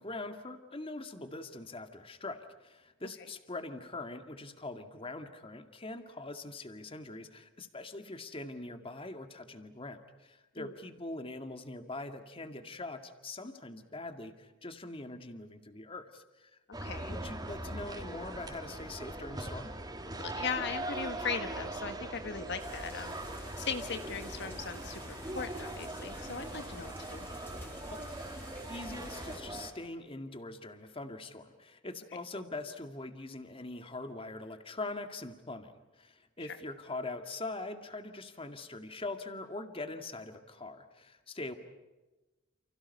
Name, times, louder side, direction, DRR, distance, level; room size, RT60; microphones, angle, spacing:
voice 1, 0.0-16.5 17.1-19.7 27.9-28.0 28.7-41.5, left 2 dB, 25° left, 7 dB, 2.1 m, -43 dB
sound 1, 16.7-29.7, right 1 dB, 20° right, 3.5 m, -41 dB
voice 2, 16.8-17.1 20.2-23.2 23.6-27.3 36.4-36.6, left 5 dB, 60° left, 7 dB, 1.5 m, -38 dB
sound 2, 22.6-29.4, left 1 dB, 10° left, 5.0 m, -50 dB
30.0 x 30.0 x 5.5 m, 1.1 s
head